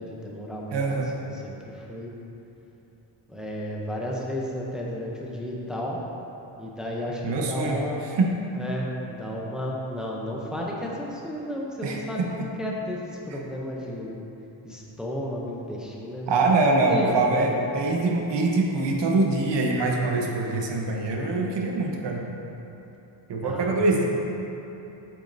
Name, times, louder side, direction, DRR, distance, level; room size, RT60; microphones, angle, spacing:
voice 1, 0.0-0.9 1.1-2.1 3.3-6.0 6.6-8.0 8.5-14.2 14.6-16.6 16.8-17.8 23.4-23.8, equal, ahead, -3 dB, 0.5 m, -33 dB
voice 2, 0.7-1.1 7.2-7.8 8.1-8.3 11.8-12.3 16.3-22.2 23.3-24.1, right 3 dB, 65° right, 0 dB, 0.9 m, -24 dB
8.3 x 6.2 x 2.6 m, 3.0 s
wide cardioid pair, 175°, 46 cm